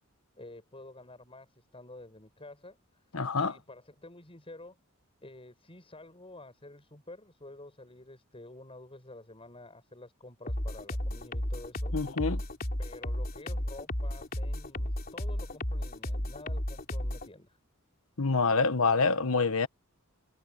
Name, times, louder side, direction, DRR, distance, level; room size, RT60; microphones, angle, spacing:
voice 1, 0.4-3.0 3.4-4.8 5.2-11.9 12.8-17.6, left 2 dB, 25° left, 7.9 m, -49 dB
voice 2, 3.1-3.5 11.9-12.4 18.2-19.7, left 4 dB, 75° left, 1.3 m, -26 dB
sound 1, 10.5-17.3, left 1 dB, 45° left, 2.9 m, -33 dB
head